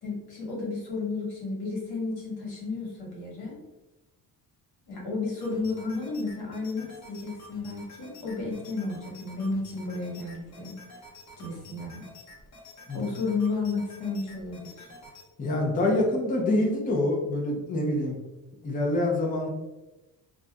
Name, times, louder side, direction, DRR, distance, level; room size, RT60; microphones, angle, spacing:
voice 1, 0.0-3.6 4.9-10.7 11.4-12.0 12.9-14.9, left 3 dB, 80° left, -2 dB, 1.1 m, -32 dB
sound 1, 5.4-15.3, left 1 dB, 45° left, 0.9 m, -49 dB
voice 2, 15.4-18.2 18.6-19.5, left 1 dB, 20° left, -2 dB, 0.6 m, -26 dB
2.3 x 2.2 x 3.9 m, 1.0 s
cardioid pair, 120°, 39 cm